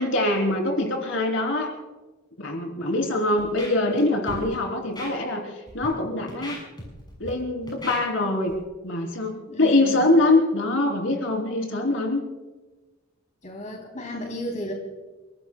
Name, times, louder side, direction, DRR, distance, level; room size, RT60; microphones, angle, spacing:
voice 1, 0.0-1.7 2.4-6.6 7.2-8.5 8.8-12.2, left 2 dB, 70° left, 2 dB, 3.5 m, -23 dB
Scratching (performance technique), 3.4-4.0 4.3-4.4 5.0-5.1 5.7-5.9 6.3-7.3 7.7-8.0 8.5-8.6, left 1 dB, 20° left, 6.5 m, -37 dB
voice 2, 9.5-10.0 13.4-14.7, equal, 40° left, 0 dB, 3.2 m, -34 dB
30.0 x 18.5 x 2.3 m, 1.2 s
head